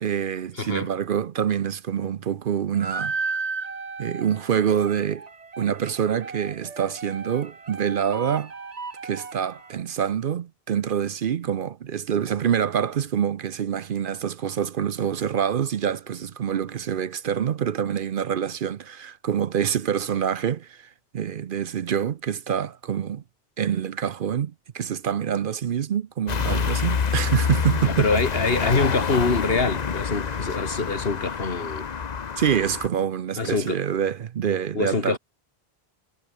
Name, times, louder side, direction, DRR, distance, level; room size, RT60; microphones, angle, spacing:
voice 1, 0.0-3.2 4.0-5.3 5.6-8.5 9.0-23.2 23.6-28.1 32.4-35.2, right 8 dB, 60° right, 0.8 m, -26 dB
voice 2, 0.5-0.9 27.8-31.9 33.4-33.8 34.7-35.2, left 4 dB, 65° left, 2.3 m, -25 dB
sound 1, 2.7-9.8, right 4 dB, 40° right, 1.3 m, -35 dB
sound 2, 26.3-32.9, left 6 dB, 45° left, 0.9 m, -27 dB
omnidirectional pair, 1.1 m